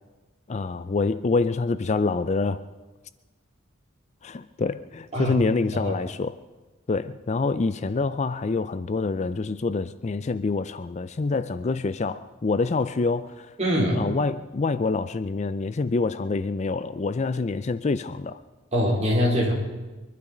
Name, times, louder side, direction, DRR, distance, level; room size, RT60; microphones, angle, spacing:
voice 1, 0.5-2.6 4.2-6.4 6.9-13.6 13.9-18.4, left 3 dB, 35° left, 13 dB, 0.4 m, -26 dB
voice 2, 13.6-14.0 18.7-19.5, equal, 35° right, -2 dB, 4.2 m, -23 dB
23.0 x 12.0 x 5.1 m, 1.2 s
head